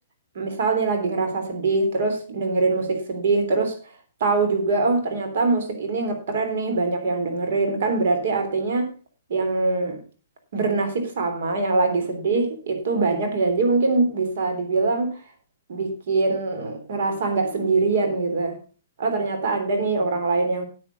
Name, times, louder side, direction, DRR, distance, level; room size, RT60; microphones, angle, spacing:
voice 1, 0.3-3.7 4.2-8.9 9.3-10.0 10.5-15.2 15.7-18.6 19.0-20.6, right 3 dB, 60° right, 5 dB, 3.3 m, -23 dB
9.2 x 9.0 x 5.2 m, 0.36 s
hypercardioid pair, 150°, 0 cm